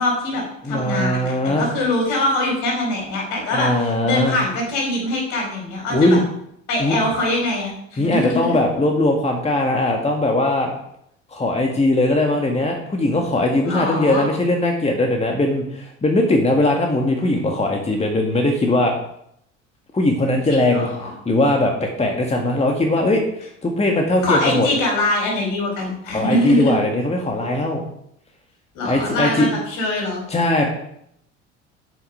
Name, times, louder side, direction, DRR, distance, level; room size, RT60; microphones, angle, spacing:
voice 1, 0.0-3.7 4.0-6.2 6.7-8.5 13.6-14.2 20.5-21.1 24.2-26.8 28.7-30.2, left 2 dB, 60° left, -1 dB, 4.9 m, -23 dB
voice 2, 0.6-1.7 3.5-4.4 5.9-6.2 6.8-7.0 8.0-10.7 11.3-18.9 19.9-20.9 21.3-24.7 26.1-27.8 28.9-29.5 30.3-30.7, left 1 dB, 15° left, 2 dB, 1.9 m, -20 dB
12.0 x 6.1 x 5.1 m, 0.73 s
figure-of-eight pair, 60°, 36 cm